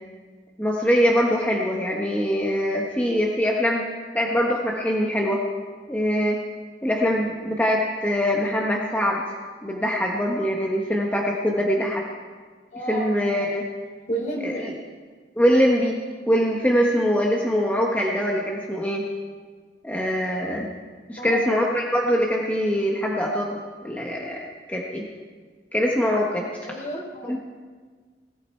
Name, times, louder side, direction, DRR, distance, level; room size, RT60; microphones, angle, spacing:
voice 1, 0.6-3.9 4.1-5.4 5.9-6.4 6.8-9.2 9.6-12.0 12.9-13.6 14.4-14.7 15.3-19.0 19.8-20.7 21.1-24.4 24.7-25.0 25.7-26.5 27.3-27.4, equal, 10° left, -2 dB, 1.2 m, -23 dB
voice 2, 12.7-13.1 14.1-14.6 21.2-21.6 26.6-27.4, right 1 dB, 45° left, -1 dB, 3.8 m, -31 dB
20.0 x 14.5 x 4.5 m, 1.5 s
head